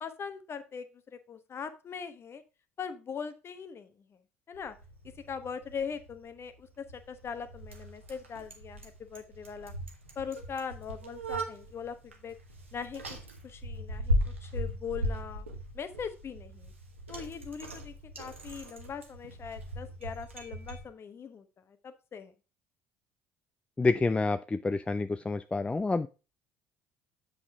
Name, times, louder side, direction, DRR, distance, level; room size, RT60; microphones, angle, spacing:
voice 1, 0.0-2.4 2.8-4.2 4.5-4.8 5.3-9.7 10.2-12.4 12.7-13.2 13.4-15.5 15.7-16.7 17.1-22.3, left 6 dB, 40° left, 11 dB, 1.0 m, -41 dB
Bicycle, 4.5-20.8, equal, 90° right, 1.0 m, -38 dB
voice 2, 23.8-26.1, left 3 dB, 15° left, 11 dB, 0.4 m, -28 dB
7.9 x 5.8 x 3.5 m, 0.31 s
figure-of-eight pair, 55°, 7 cm